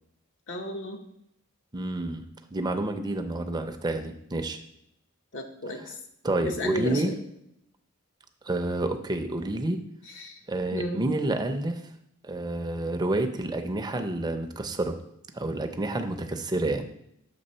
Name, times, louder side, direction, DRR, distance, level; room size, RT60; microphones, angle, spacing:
voice 1, 0.5-1.0 5.3-5.9 6.4-7.1 10.1-10.4 10.7-11.0, left 1 dB, 60° left, 3 dB, 0.7 m, -33 dB
voice 2, 1.7-2.2 2.5-4.6 6.2-7.1 8.4-9.8 10.5-11.8 12.2-15.0 15.3-16.8, right 2 dB, 20° right, 6 dB, 0.5 m, -29 dB
6.9 x 3.4 x 5.4 m, 0.77 s
head